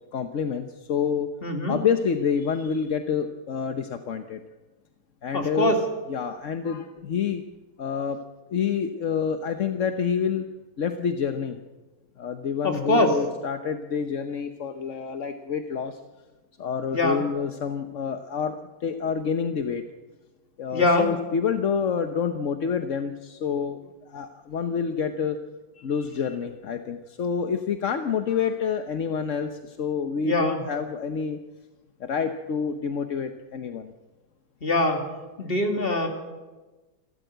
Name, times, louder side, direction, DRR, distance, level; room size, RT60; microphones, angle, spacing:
voice 1, 0.1-1.3 1.7-4.4 5.2-5.8 6.1-7.4 7.8-8.2 8.5-10.5 10.8-11.6 12.2-16.0 16.6-19.8 20.6-23.8 24.1-25.4 25.8-31.4 32.0-33.9, left 6 dB, 50° left, 7 dB, 1.1 m, -28 dB
voice 2, 1.4-1.8 5.3-5.8 12.6-13.2 16.9-17.2 20.7-21.1 30.2-30.6 34.6-35.1 35.4-36.1, left 1 dB, 30° left, 3 dB, 2.8 m, -23 dB
28.0 x 13.5 x 8.0 m, 1.2 s
omnidirectional pair, 2.1 m